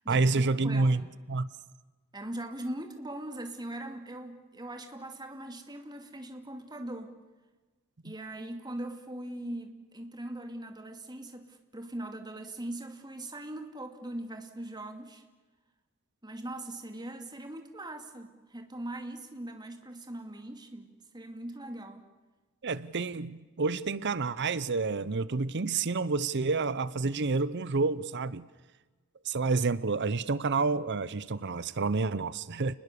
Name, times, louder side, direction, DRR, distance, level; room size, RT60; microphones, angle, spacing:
voice 1, 0.1-1.5 22.6-28.4 29.2-32.8, right 3 dB, 55° right, 17 dB, 0.7 m, -29 dB
voice 2, 0.6-1.2 2.1-7.1 8.0-15.2 16.2-22.0, right 1 dB, 20° right, 5 dB, 2.5 m, -41 dB
30.0 x 20.5 x 6.8 m, 1.3 s
head